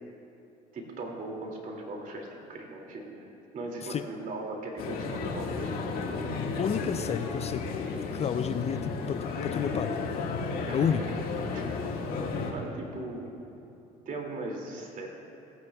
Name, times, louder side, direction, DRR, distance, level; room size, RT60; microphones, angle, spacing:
voice 1, 0.7-3.3 3.5-6.2 10.7-10.9 11.5-11.7 12.5-13.3 14.1-15.1, right 2 dB, 45° right, 1 dB, 2.4 m, -38 dB
sound 1, 4.8-12.5, left 4 dB, 55° left, 1.7 m, -33 dB
voice 2, 6.6-10.0 10.7-11.0, left 8 dB, 35° left, 10 dB, 0.4 m, -31 dB
18.0 x 9.2 x 2.3 m, 2.9 s
hypercardioid pair, 70°, 18 cm